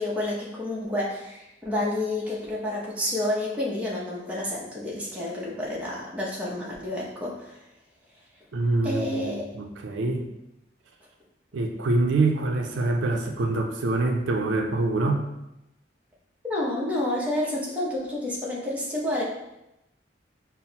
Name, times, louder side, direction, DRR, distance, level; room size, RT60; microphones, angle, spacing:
voice 1, 0.0-7.5 8.8-9.4 16.5-19.2, left 1 dB, 5° right, -5 dB, 0.7 m, -29 dB
voice 2, 8.5-10.3 11.5-15.3, right 2 dB, 85° right, 3 dB, 0.4 m, -25 dB
5.5 x 2.0 x 2.8 m, 0.88 s
head